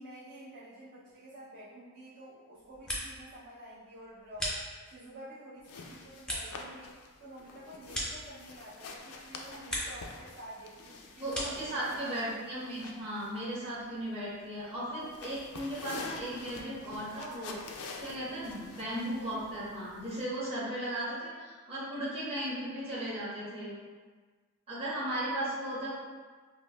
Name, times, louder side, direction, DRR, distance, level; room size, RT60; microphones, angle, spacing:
voice 1, 0.0-12.4 12.8-13.0, equal, 45° right, -11 dB, 0.5 m, -49 dB
sound 1, 2.5-3.4 3.7-5.1 5.6-8.8 9.2-10.1 10.4-11.7, equal, 5° left, 0.4 m, -40 dB
sound 2, 5.6-20.2, left 4 dB, 90° left, 0.4 m, -48 dB
voice 2, 11.2-23.7 24.7-26.0, right 1 dB, 25° right, -11 dB, 1.1 m, -36 dB
5.2 x 2.1 x 2.2 m, 1.5 s
head